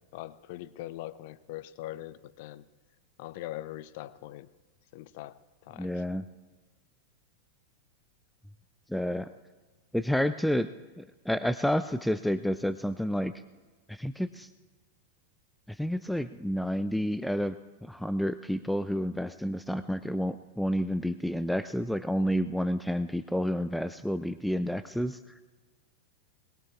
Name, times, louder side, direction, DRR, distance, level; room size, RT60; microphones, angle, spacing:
voice 1, 0.1-2.7 3.2-4.5 4.9-6.0, left 15 dB, 50° left, 16 dB, 0.6 m, -42 dB
voice 2, 5.8-6.2 8.9-9.3 9.9-10.7 11.0-13.3 13.9-14.5 15.8-17.6 17.8-25.2, equal, ahead, 13 dB, 0.4 m, -30 dB
22.0 x 20.5 x 2.5 m, 1.4 s
figure-of-eight pair, 90°, 0 cm